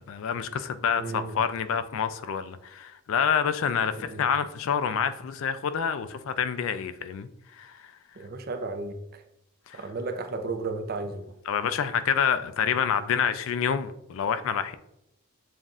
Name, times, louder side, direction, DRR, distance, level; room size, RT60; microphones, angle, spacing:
voice 1, 0.0-7.9 9.7-9.9 11.5-14.8, left 7 dB, 65° left, 12 dB, 0.3 m, -28 dB
voice 2, 1.0-1.3 4.0-4.2 8.2-9.0 9.7-11.2, right 3 dB, 45° right, 6 dB, 0.4 m, -33 dB
7.1 x 2.6 x 2.4 m, 0.82 s
head